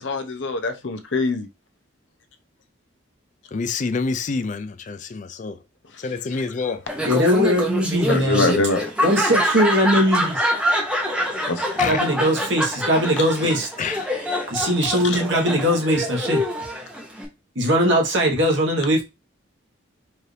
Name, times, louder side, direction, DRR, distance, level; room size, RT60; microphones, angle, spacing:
voice 1, 0.0-1.5 8.1-8.9 11.5-11.7 15.0-15.2, left 3 dB, 65° left, 0.7 m, -24 dB
voice 2, 3.5-5.6 6.0-6.9 11.8-12.0 13.4-13.5 13.8-14.1, left 4 dB, 40° left, 0.4 m, -27 dB
Laughter, 6.9-17.2, equal, 5° right, 0.9 m, -25 dB
voice 3, 7.0-8.5 9.0-10.5 11.8-13.7 14.5-16.5 17.5-19.0, equal, 65° right, 1.3 m, -20 dB
4.5 x 2.6 x 3.2 m
head